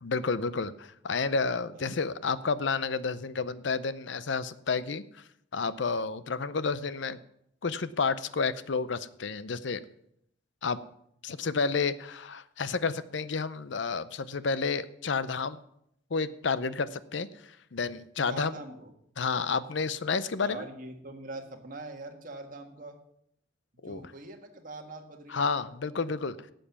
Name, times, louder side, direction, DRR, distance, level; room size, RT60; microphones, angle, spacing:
voice 1, 0.0-5.0 5.5-7.2 7.6-9.8 10.6-10.8 11.2-15.6 16.1-18.5 19.2-20.6 23.8-24.0 25.3-26.4, left 4 dB, 65° left, 15 dB, 0.6 m, -30 dB
voice 2, 18.3-18.9 20.4-23.0 23.7-25.6 26.0-26.1, right 2 dB, 45° right, 3 dB, 1.7 m, -43 dB
11.5 x 7.8 x 7.0 m, 0.74 s
head